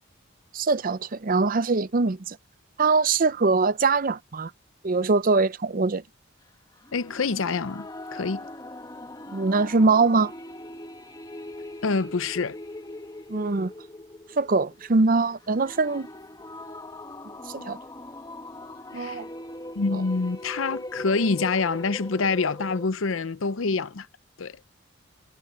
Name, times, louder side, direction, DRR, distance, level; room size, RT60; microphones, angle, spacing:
voice 1, 0.5-2.4 2.8-4.5 4.8-6.0 9.3-10.3 13.3-13.7 14.4-16.1 17.5-17.8 18.9-19.3 19.9-20.0, right 3 dB, 45° right, 0.6 m, -22 dB
sound 1, 6.8-22.9, left 1 dB, 20° left, 1.8 m, -41 dB
voice 2, 6.9-8.4 11.8-12.6 18.9-19.2 19.8-24.1 24.4-24.6, left 4 dB, 85° left, 0.7 m, -26 dB
head